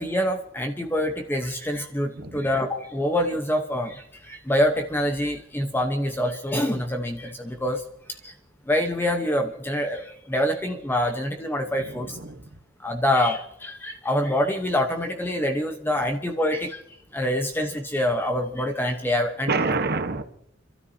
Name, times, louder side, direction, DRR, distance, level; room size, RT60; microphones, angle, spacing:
voice 1, 0.0-8.3 8.7-12.2 12.8-16.8 17.1-19.5, left 1 dB, 10° left, 3 dB, 0.9 m, -26 dB
voice 2, 2.1-2.5 11.8-12.5 19.5-20.2, right 3 dB, 55° right, 8 dB, 1.1 m, -28 dB
29.5 x 13.0 x 2.7 m, 0.74 s
head